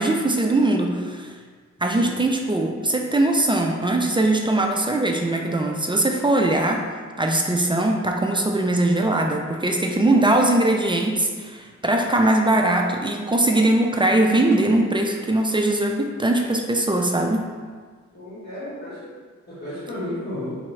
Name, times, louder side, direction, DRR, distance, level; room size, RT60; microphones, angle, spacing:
voice 1, 0.0-1.3 1.8-6.8 7.2-17.5, right 1 dB, 15° right, 2 dB, 0.3 m, -21 dB
voice 2, 18.1-19.1 19.5-20.5, left 1 dB, 55° left, -12 dB, 1.3 m, -33 dB
4.1 x 2.3 x 3.1 m, 1.5 s
cardioid pair, 75°, 30 cm